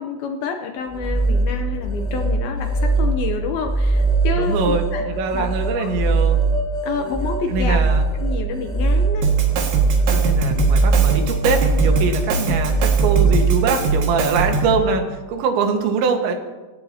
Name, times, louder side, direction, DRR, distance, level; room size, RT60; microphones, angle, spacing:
voice 1, 0.0-5.1 5.3-5.5 5.8-5.9 6.8-7.8 8.2-9.3 12.5-12.6, left 6 dB, 75° left, 5 dB, 2.4 m, -28 dB
sound 1, 0.8-14.2, right 3 dB, ahead, 6.3 m, -21 dB
voice 2, 4.3-6.4 7.5-8.1 9.3-9.5 10.1-15.0 15.3-16.3, right 5 dB, 85° right, 4 dB, 3.9 m, -23 dB
Drum kit, 9.2-14.8, right 3 dB, 70° right, 3.7 m, -22 dB
26.0 x 16.0 x 2.9 m, 1.2 s
omnidirectional pair, 5.1 m